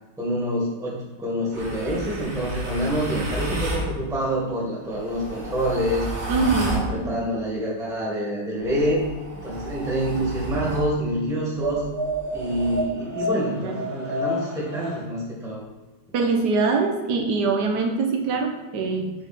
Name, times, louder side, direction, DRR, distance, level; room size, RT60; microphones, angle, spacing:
voice 1, 0.2-6.1 6.6-9.0 9.3-11.8 12.3-15.6, equal, ahead, -5 dB, 1.4 m, -27 dB
sound 1, 1.5-3.9 4.8-6.9 8.5-10.9 11.6-15.0, right 1 dB, 40° right, 1.5 m, -31 dB
voice 2, 6.3-7.2 13.3-13.8 16.1-19.1, right 4 dB, 65° right, 3 dB, 1.4 m, -24 dB
7.1 x 3.5 x 4.2 m, 1.2 s
omnidirectional pair, 2.0 m